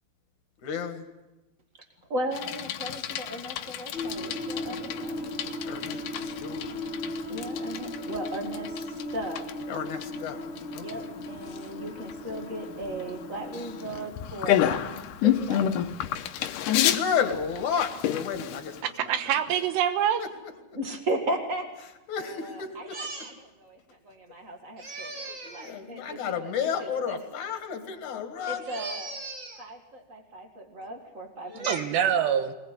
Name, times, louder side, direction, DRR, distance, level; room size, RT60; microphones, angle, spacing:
voice 1, 0.6-1.1 5.7-6.8 9.7-11.1 16.9-19.2 20.2-20.8 22.1-23.0 24.8-25.0 25.4-28.6, left 7 dB, 55° left, 6 dB, 2.8 m, -32 dB
voice 2, 2.1-5.4 7.3-9.5 10.8-15.7 20.7-21.7 22.2-26.5 26.8-27.2 28.5-32.4, right 1 dB, 65° right, 4 dB, 0.7 m, -36 dB
Bicycle, 2.3-18.8, left 11 dB, 75° left, 2.0 m, -31 dB
sound 1, 3.9-14.1, left 1 dB, 5° right, 2.4 m, -37 dB
voice 3, 19.0-20.2 31.7-32.5, right 9 dB, 80° right, 9 dB, 3.4 m, -25 dB
22.0 x 20.0 x 8.3 m, 1.1 s
omnidirectional pair, 4.8 m